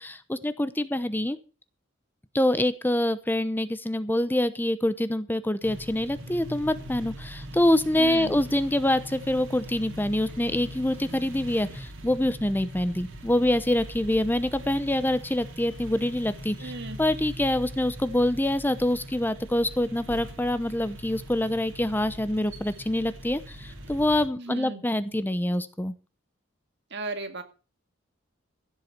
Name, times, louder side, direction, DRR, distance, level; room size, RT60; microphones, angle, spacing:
voice 1, 0.0-1.4 2.3-16.7 17.0-25.9, left 1 dB, 10° left, 13 dB, 0.8 m, -25 dB
sound 1, 5.6-24.3, equal, 80° right, 3.1 m, -41 dB
voice 2, 8.0-8.3 16.6-17.0 24.4-24.8 26.9-27.4, right 2 dB, 60° right, 7 dB, 2.2 m, -35 dB
16.0 x 7.5 x 6.7 m, 0.35 s
head